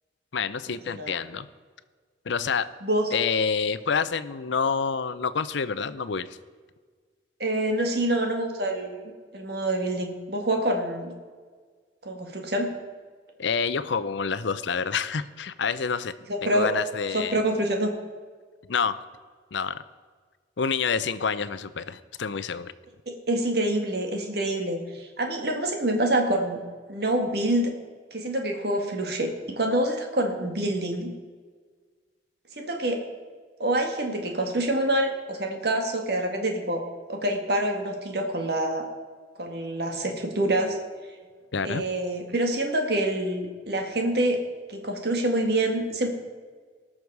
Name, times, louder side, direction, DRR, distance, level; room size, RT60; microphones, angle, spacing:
voice 1, 0.3-1.5 2.3-2.7 3.1-6.3 13.4-16.1 16.4-17.4 18.7-19.0 19.5-19.8 20.6-22.7 41.5-41.8, left 5 dB, 75° left, 14 dB, 0.6 m, -27 dB
voice 2, 7.4-11.1 12.0-12.7 16.4-16.7 17.1-17.9 23.3-26.6 26.9-27.7 28.1-31.1 32.6-33.0 33.6-36.8 37.1-38.8 39.4-40.8 41.6-44.4 44.7-46.1, right 1 dB, 55° right, 3 dB, 1.8 m, -26 dB
19.0 x 6.4 x 4.7 m, 1.6 s
head